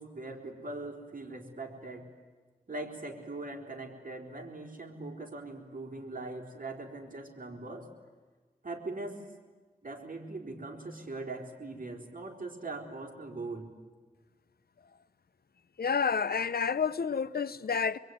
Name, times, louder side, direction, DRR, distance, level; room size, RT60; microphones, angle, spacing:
voice 1, 0.0-2.1 2.7-7.9 8.6-9.2 9.8-13.7, right 2 dB, 60° right, 4.1 m, -41 dB
voice 2, 15.8-18.0, left 6 dB, 80° left, 0.8 m, -29 dB
26.0 x 22.0 x 9.4 m
wide cardioid pair, 55°, 16 cm